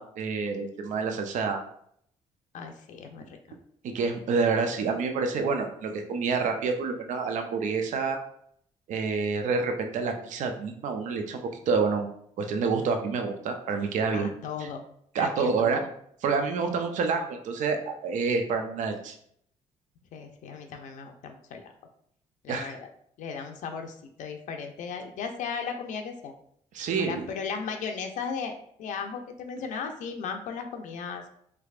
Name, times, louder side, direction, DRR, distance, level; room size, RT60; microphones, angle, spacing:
voice 1, 0.0-1.6 3.8-8.2 8.9-12.1 12.4-14.3 15.1-15.8 16.2-19.1 22.5-22.7 26.7-27.3, right 4 dB, 70° right, 5 dB, 0.5 m, -28 dB
voice 2, 2.5-3.4 14.1-14.8 15.2-15.9 16.6-16.7 20.1-21.7 22.4-22.9 23.2-26.3 27.0-31.2, left 6 dB, 75° left, 4 dB, 0.5 m, -36 dB
3.3 x 3.2 x 2.4 m, 0.67 s
cardioid pair, 75°, 13 cm